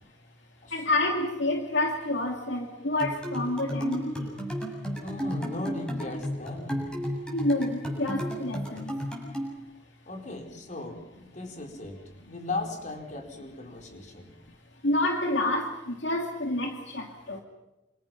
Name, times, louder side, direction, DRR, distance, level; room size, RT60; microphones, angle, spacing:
voice 1, 0.7-4.3 7.3-8.9 14.8-17.4, left 1 dB, 70° left, 2 dB, 2.5 m, -28 dB
sound 1, 3.0-9.5, equal, 5° left, 7.1 m, -33 dB
voice 2, 5.0-6.9 10.1-14.3, left 2 dB, 40° left, 3 dB, 4.4 m, -37 dB
28.0 x 27.5 x 5.9 m, 0.96 s
head